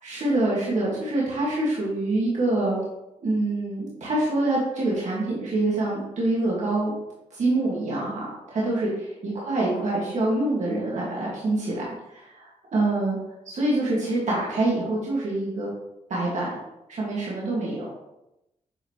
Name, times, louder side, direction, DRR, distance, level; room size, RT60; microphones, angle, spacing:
voice 1, 0.0-2.8 3.2-6.9 7.3-11.8 12.1-13.2 13.5-15.7 16.1-16.6 16.9-17.9, right 2 dB, 65° right, -5 dB, 2.0 m, -25 dB
7.9 x 4.1 x 3.1 m, 0.89 s
cardioid pair, 65°, 13 cm